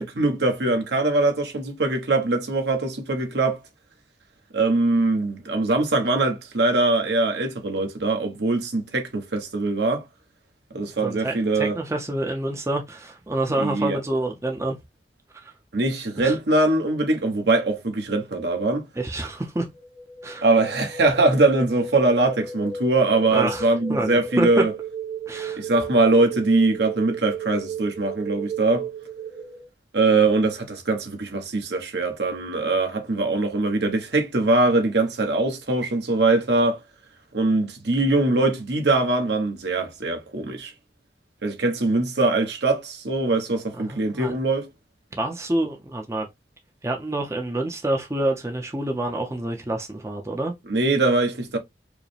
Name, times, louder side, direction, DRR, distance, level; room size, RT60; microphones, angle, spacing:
voice 1, 0.0-3.6 4.5-10.0 10.7-11.7 13.6-14.0 15.7-18.8 20.4-24.7 25.6-28.9 29.9-36.8 37.3-40.7 41.4-44.7 50.7-51.6, right 2 dB, 70° right, 1.0 m, -22 dB
voice 2, 11.0-14.7 15.4-15.5 16.2-16.3 19.0-19.7 20.2-20.4 23.3-24.5 25.3-25.6 43.8-44.3 45.2-46.3 46.8-50.5, right 1 dB, 15° right, 0.5 m, -27 dB
sound 1, 19.7-29.7, right 5 dB, 45° right, 1.4 m, -34 dB
4.7 x 2.1 x 3.2 m
head